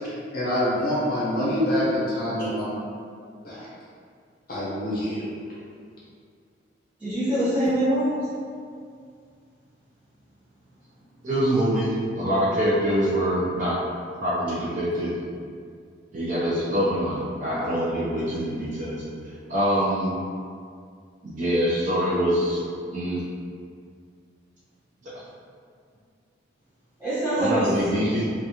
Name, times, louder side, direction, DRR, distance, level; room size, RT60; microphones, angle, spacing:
voice 1, 0.0-2.6 3.4-3.7 4.5-5.3, left 1 dB, 50° left, -9 dB, 0.7 m, -26 dB
voice 2, 7.0-8.3 27.0-27.8, right 1 dB, 5° right, -16 dB, 1.4 m, -24 dB
voice 3, 11.2-13.8 14.2-15.1 16.1-19.0 19.5-20.1 21.2-22.6 22.9-23.2 25.0-25.1 27.4-28.2, equal, 40° right, -8 dB, 0.4 m, -24 dB
2.4 x 2.2 x 2.7 m, 2.2 s
head